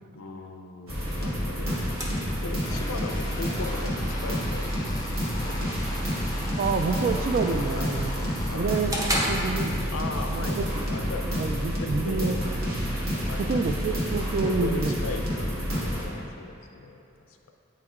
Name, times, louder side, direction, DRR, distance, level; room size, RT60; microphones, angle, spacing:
voice 1, 0.1-1.8 2.4-3.9 4.2-5.0 5.4-5.7 7.7-7.9 8.5-8.8 9.9-11.2 11.8-12.4 13.3-13.8 14.4-17.5, left 3 dB, 85° left, 4 dB, 0.5 m, -38 dB
sound 1, 0.9-16.0, equal, 80° right, 1.3 m, -29 dB
sound 2, 1.1-10.1, equal, 15° right, 0.7 m, -37 dB
sound 3, 2.6-8.6, left 1 dB, 20° left, 0.5 m, -41 dB
voice 2, 6.6-8.2 8.5-9.9 10.2-10.8 11.3-13.1 13.5-15.0, right 4 dB, 45° right, 7 dB, 0.3 m, -29 dB
8.5 x 3.2 x 3.6 m, 2.9 s
head